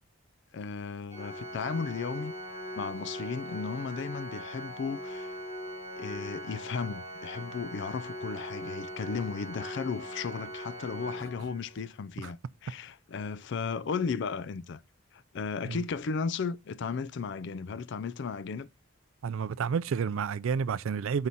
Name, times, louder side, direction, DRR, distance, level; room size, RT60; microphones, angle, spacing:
voice 1, 0.5-2.3 2.7-5.4 6.0-14.8 15.1-18.7, left 5 dB, 55° left, 0.4 m, -35 dB
Organ, 1.1-12.0, equal, 35° left, 2.9 m, -40 dB
voice 2, 19.2-21.3, right 6 dB, 70° right, 0.4 m, -30 dB
4.8 x 4.0 x 5.7 m
head